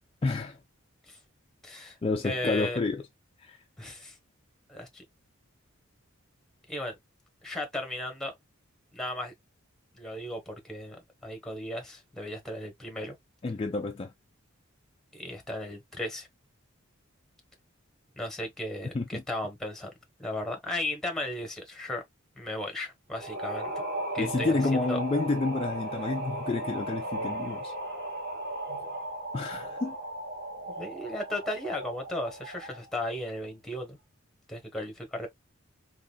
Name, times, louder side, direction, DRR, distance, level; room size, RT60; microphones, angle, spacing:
voice 1, 0.2-0.6 2.0-3.0 3.4-3.6 13.4-14.1 18.9-19.2 24.2-27.7 29.3-30.0, left 3 dB, 25° left, 0.3 m, -29 dB
voice 2, 1.6-2.0 2.2-2.8 3.8-4.2 4.7-5.0 6.7-7.0 7.4-8.3 8.9-9.3 10.0-13.2 15.1-16.3 18.2-19.9 20.2-22.0 22.4-23.8 24.1-25.0 30.8-34.0 34.5-35.3, left 1 dB, ahead, 1.0 m, -35 dB
sound 1, 23.1-32.9, right 1 dB, 50° right, 1.2 m, -36 dB
3.9 x 3.1 x 2.2 m
head